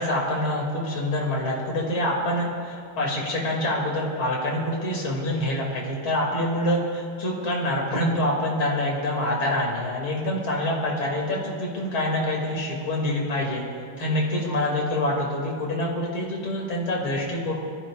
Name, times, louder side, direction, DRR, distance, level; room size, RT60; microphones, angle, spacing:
voice 1, 0.0-13.6 14.0-17.5, left 1 dB, 70° left, -2 dB, 3.5 m, -26 dB
23.5 x 14.0 x 2.5 m, 2.4 s
omnidirectional pair, 2.4 m